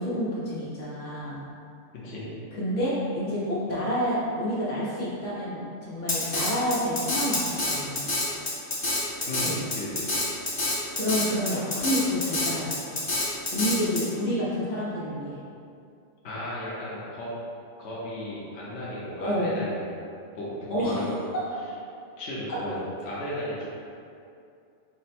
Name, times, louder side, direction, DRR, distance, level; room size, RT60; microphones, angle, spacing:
voice 1, 0.0-1.4 2.5-8.1 9.4-9.6 10.9-13.0 13.5-15.4 19.2-19.5 20.7-21.1 21.3-21.4 22.5-22.6, equal, 90° left, -8 dB, 1.5 m, -29 dB
voice 2, 1.9-2.3 9.3-10.1 16.2-17.3 17.8-19.8 20.3-21.2 22.2-22.7 23.0-23.7, left 1 dB, 65° left, -7 dB, 1.1 m, -35 dB
Drum kit, 6.1-14.0, left 2 dB, 30° left, 0.6 m, -27 dB
4.3 x 2.1 x 4.2 m, 2.5 s
omnidirectional pair, 1.2 m